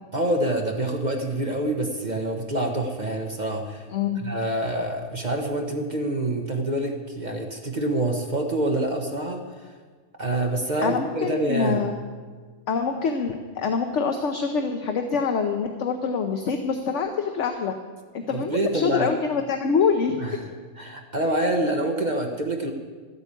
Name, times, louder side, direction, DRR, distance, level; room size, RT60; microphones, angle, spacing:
voice 1, 0.1-3.9 4.2-9.4 10.2-11.9 18.3-19.1 20.2-20.4 20.8-22.7, right 1 dB, 35° right, 2 dB, 1.2 m, -26 dB
voice 2, 3.9-4.2 10.8-11.9 12.7-17.7 18.1-20.6, left 5 dB, 60° left, 5 dB, 1.1 m, -25 dB
13.0 x 8.2 x 8.4 m, 1.5 s
omnidirectional pair, 1.5 m